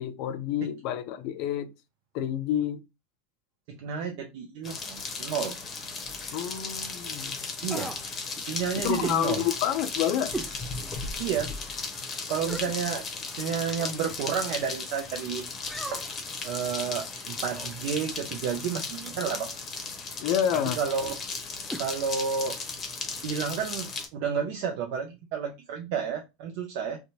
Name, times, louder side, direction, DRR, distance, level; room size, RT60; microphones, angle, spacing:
voice 1, 0.0-1.7 2.1-2.8 6.3-7.4 8.8-10.3 20.2-20.8, left 10 dB, 55° left, 0.4 m, -28 dB
voice 2, 3.7-5.6 7.6-7.9 8.5-9.4 11.2-11.5 12.3-13.0 13.3-15.5 15.9-16.0 16.4-19.5 20.7-21.1 21.8-22.6 23.2-27.0, right 7 dB, 60° right, 0.4 m, -31 dB
sound 1, 4.6-24.1, left 4 dB, 30° left, 0.8 m, -36 dB
sound 2, 7.7-8.1 9.0-9.2 10.3-10.6 11.0-11.1 12.4-12.8 13.7-14.0 15.7-16.2 17.4-17.8 19.1-19.3 20.5-20.7 21.7-21.9 22.1-22.2, right 1 dB, 5° right, 0.4 m, -38 dB
2.6 x 2.2 x 2.8 m
hypercardioid pair, 85°, 0 cm